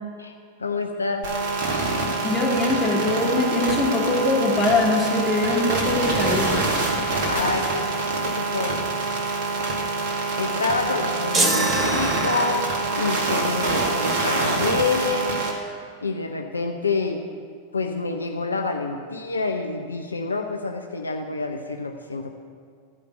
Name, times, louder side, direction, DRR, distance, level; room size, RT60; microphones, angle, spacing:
voice 1, 0.6-1.3 7.2-7.8 8.2-9.0 10.4-15.5 16.0-17.2 17.7-22.3, left 3 dB, 75° left, 4 dB, 0.6 m, -27 dB
sound 1, 1.2-15.5, right 3 dB, 50° right, 1.9 m, -25 dB
voice 2, 2.2-6.6, left 2 dB, 15° left, -4 dB, 2.5 m, -22 dB
sound 2, 11.3-12.8, right 2 dB, 20° right, 1.2 m, -24 dB
13.5 x 5.1 x 7.9 m, 2.1 s
figure-of-eight pair, 90°, 0 cm